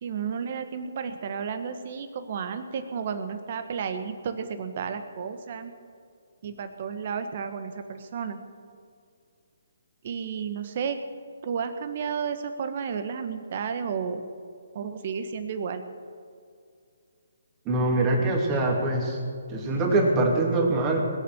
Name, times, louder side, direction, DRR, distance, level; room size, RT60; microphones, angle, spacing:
voice 1, 0.0-5.7 6.4-8.4 10.0-11.0 11.4-14.2 14.7-15.8, right 6 dB, 45° right, 9 dB, 1.3 m, -32 dB
voice 2, 17.6-19.2 19.5-21.1, right 2 dB, 20° right, -1 dB, 2.8 m, -23 dB
20.5 x 7.1 x 7.0 m, 2.3 s
hypercardioid pair, 150°, 0 cm